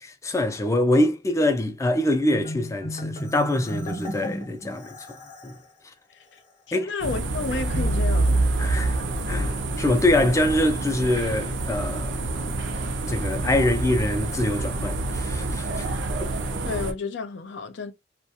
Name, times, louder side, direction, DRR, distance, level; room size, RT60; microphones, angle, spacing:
voice 1, 0.0-5.0 5.4-5.6 6.7-6.9 8.6-9.0 9.3-12.2 13.0-15.9 16.2-16.3, left 1 dB, 15° left, 0.3 m, -24 dB
Marimba xylophone, 2.3-5.6, equal, 35° left, 0.7 m, -34 dB
voice 2, 6.7-8.5 16.6-17.9, left 4 dB, 80° left, 0.5 m, -31 dB
sound 1, 7.0-16.9, right 2 dB, 85° right, 0.5 m, -27 dB
2.3 x 2.1 x 2.7 m
head